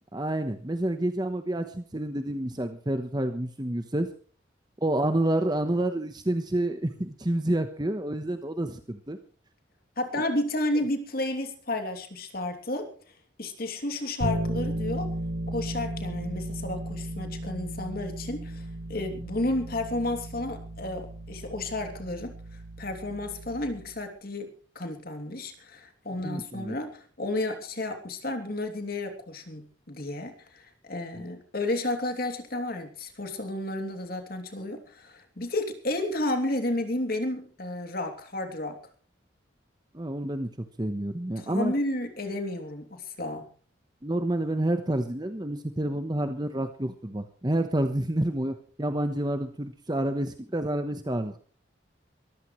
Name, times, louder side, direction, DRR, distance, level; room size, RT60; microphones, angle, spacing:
voice 1, 0.1-4.1 4.8-9.2 10.1-10.2 26.2-26.8 39.9-40.5 40.8-41.7 44.0-51.4, right 1 dB, 20° right, 8 dB, 1.1 m, -29 dB
voice 2, 10.0-12.9 13.4-15.1 15.5-22.3 22.8-24.5 24.7-38.8 41.4-43.5, left 1 dB, 50° left, 5 dB, 2.9 m, -32 dB
Bass guitar, 14.2-24.1, right 1 dB, 80° right, 3.2 m, -35 dB
23.0 x 15.0 x 3.2 m, 0.42 s
head